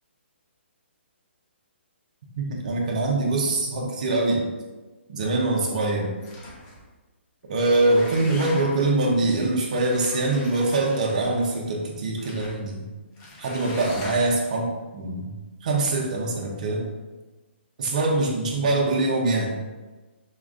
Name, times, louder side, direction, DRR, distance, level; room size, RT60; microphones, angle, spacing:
voice 1, 2.4-4.4 5.1-6.1 7.5-12.8 13.4-15.3 15.6-16.9 17.8-19.5, right 2 dB, 35° right, -1 dB, 0.6 m, -23 dB
sound 1, 6.2-6.8 7.4-8.9 9.7-11.5 12.2-12.6 13.2-14.5, left 2 dB, 15° left, 0.4 m, -41 dB
4.8 x 2.4 x 2.4 m, 1.2 s
hypercardioid pair, 170°, 7 cm